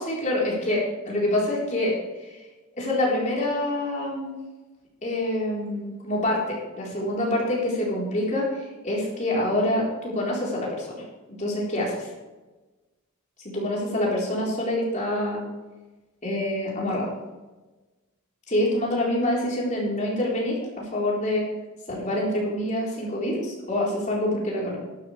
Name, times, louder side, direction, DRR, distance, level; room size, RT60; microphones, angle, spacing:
voice 1, 0.0-1.9 2.2-2.4 2.8-4.3 5.0-11.0 11.3-12.1 13.4-15.4 16.2-17.1 18.5-21.4 21.9-24.8, left 1 dB, 35° left, -4 dB, 4.2 m, -26 dB
13.0 x 12.5 x 3.4 m, 1.2 s
head